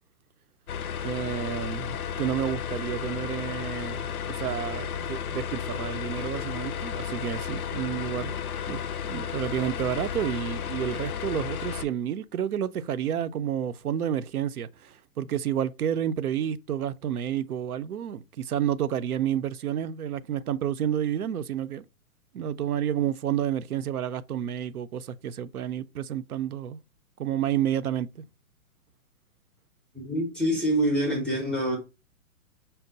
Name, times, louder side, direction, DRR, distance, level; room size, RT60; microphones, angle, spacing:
sound 1, 0.7-11.9, left 8 dB, 90° left, 0.5 m, -33 dB
voice 1, 1.0-8.3 8.7-21.8 22.3-26.8 27.2-28.1, right 10 dB, 85° right, 0.6 m, -30 dB
voice 2, 29.9-31.8, right 1 dB, ahead, 0.4 m, -26 dB
5.6 x 2.0 x 3.8 m
hypercardioid pair, 135°, 43 cm